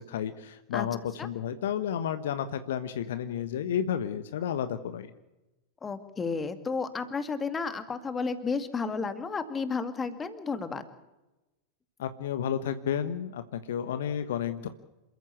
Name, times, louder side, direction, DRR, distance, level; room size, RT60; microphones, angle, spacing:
voice 1, 0.0-5.1 12.0-14.7, left 9 dB, 60° left, 10 dB, 1.2 m, -31 dB
voice 2, 5.8-10.8, left 4 dB, 15° left, 9 dB, 2.1 m, -32 dB
27.5 x 14.5 x 8.3 m, 1.0 s
figure-of-eight pair, 90°, 0 cm